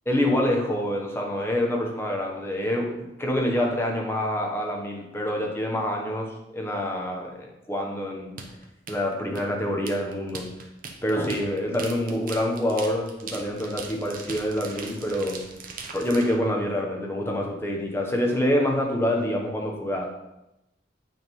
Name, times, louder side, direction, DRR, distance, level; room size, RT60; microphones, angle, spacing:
voice 1, 0.1-8.4 8.9-10.5 11.0-15.4 15.9-20.2, left 1 dB, 15° left, 0 dB, 1.2 m, -26 dB
sound 1, 8.4-16.4, right 4 dB, 50° right, 1.0 m, -40 dB
9.3 x 3.8 x 5.4 m, 0.92 s
head